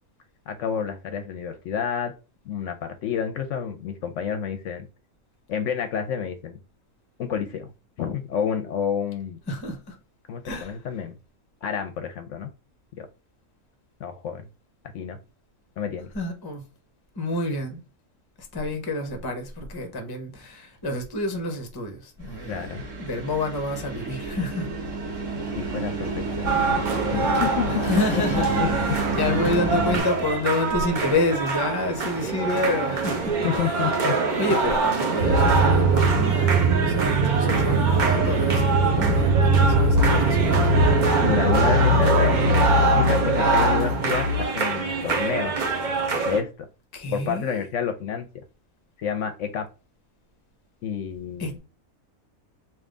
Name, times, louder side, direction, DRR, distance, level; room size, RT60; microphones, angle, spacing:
voice 1, 0.5-2.1 2.5-4.9 5.5-6.6 7.2-7.7 8.0-9.4 10.3-11.1 11.6-12.5 13.0-13.1 14.0-14.4 14.9-15.2 15.8-16.1 22.5-22.8 25.5-27.7 28.1-28.2 28.6-28.7 33.4-34.2 41.2-45.5 46.3-46.7 47.1-48.3 49.0-49.7 50.8-51.6, left 7 dB, 65° left, 0.8 m, -29 dB
voice 2, 9.5-10.0 10.4-10.8 16.1-16.6 17.1-17.8 18.4-24.7 27.7-33.9 34.4-40.7 46.9-47.7 51.4-51.6, left 2 dB, 25° left, 0.6 m, -29 dB
sound 1, 22.2-30.0, right 3 dB, 60° right, 1.6 m, -29 dB
sound 2, 26.5-46.4, right 4 dB, 45° right, 0.7 m, -25 dB
sound 3, 35.2-44.5, right 2 dB, 90° right, 1.1 m, -21 dB
3.5 x 2.6 x 3.7 m
omnidirectional pair, 1.5 m